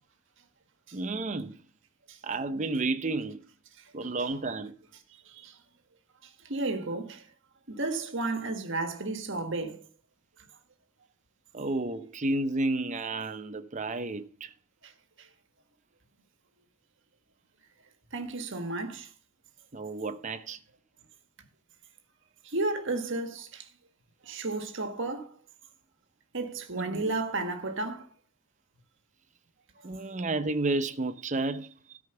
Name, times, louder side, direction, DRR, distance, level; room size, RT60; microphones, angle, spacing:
voice 1, 0.9-1.5 2.2-3.4 3.9-4.7 11.5-14.5 19.7-20.6 26.7-27.1 29.8-32.0, right 2 dB, 35° right, 0.7 m, -31 dB
voice 2, 6.4-7.2 7.7-9.8 14.8-14.9 18.1-19.1 22.4-23.7 24.2-25.3 26.3-28.1, right 2 dB, 60° right, 1.7 m, -33 dB
13.5 x 5.1 x 6.8 m
head